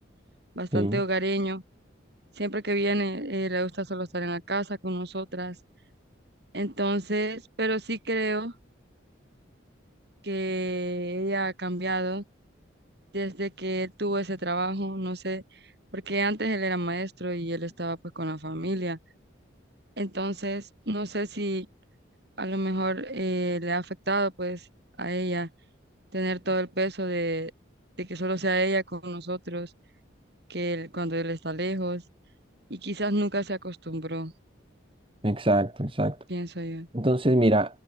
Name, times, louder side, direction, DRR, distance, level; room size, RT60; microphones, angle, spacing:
voice 1, 0.6-1.6 2.4-5.6 6.5-8.5 10.2-12.2 13.1-15.4 15.9-19.0 20.0-21.7 22.4-24.7 25.0-25.5 26.1-27.5 28.0-29.7 30.5-32.0 32.7-34.3 36.3-36.9, right 1 dB, 55° right, 7.1 m, -29 dB
voice 2, 35.2-36.2 36.9-37.8, right 1 dB, 25° right, 1.9 m, -23 dB
head